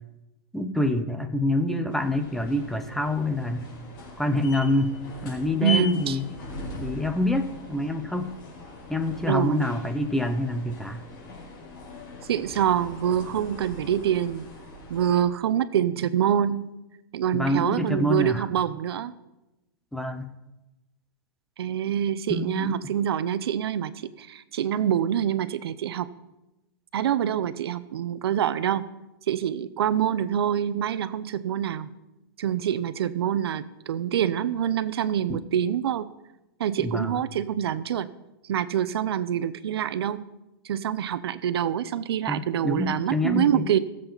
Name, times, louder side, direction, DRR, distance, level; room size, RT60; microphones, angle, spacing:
voice 1, 0.5-3.7 4.2-6.2 6.8-8.3 8.9-11.0 17.3-18.4 19.9-20.3 22.3-22.8 35.3-35.4 36.8-37.2 42.3-43.7, left 1 dB, ahead, 7 dB, 0.6 m, -26 dB
sound 1, 1.9-15.4, left 2 dB, 50° left, 4.5 m, -40 dB
voice 2, 5.6-6.2 9.3-9.6 12.3-14.5 14.9-16.7 17.1-19.1 21.6-26.1 26.9-28.9 29.3-31.9 32.4-36.1 36.6-38.1 38.5-40.2 40.6-43.8, right 10 dB, 80° right, 15 dB, 0.7 m, -26 dB
20.0 x 7.6 x 4.0 m, 0.98 s
supercardioid pair, 155°, 13 cm